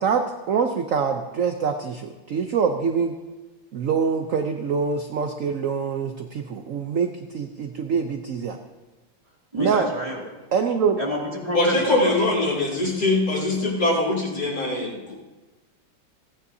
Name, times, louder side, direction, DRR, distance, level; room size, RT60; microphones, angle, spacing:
voice 1, 0.0-3.1 3.7-8.6 9.6-9.9 10.5-11.0, right 6 dB, 60° right, 6 dB, 0.8 m, -25 dB
voice 2, 9.5-10.2 11.0-12.1, equal, 15° right, -4 dB, 2.8 m, -28 dB
voice 3, 11.5-15.1, left 2 dB, 50° left, -3 dB, 3.6 m, -22 dB
29.0 x 9.7 x 2.8 m, 1.2 s
omnidirectional pair, 2.1 m